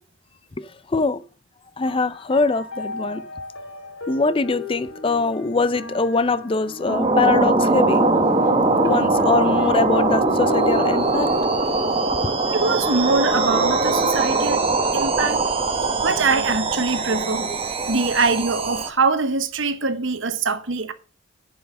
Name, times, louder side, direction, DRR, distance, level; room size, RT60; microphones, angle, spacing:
voice 1, 0.9-1.2 1.8-3.3 4.1-8.1 8.8-11.3, left 3 dB, 25° left, 0.4 m, -22 dB
sound 1, 1.8-14.5, left 2 dB, 85° left, 2.0 m, -34 dB
sound 2, 6.9-18.9, right 3 dB, 25° right, 1.0 m, -21 dB
sound 3, 7.6-17.6, right 1 dB, 55° left, 2.8 m, -40 dB
voice 2, 12.5-14.6 14.9-15.4 16.0-17.5 17.9-20.9, right 4 dB, 60° right, 1.1 m, -23 dB
9.7 x 5.5 x 6.6 m
head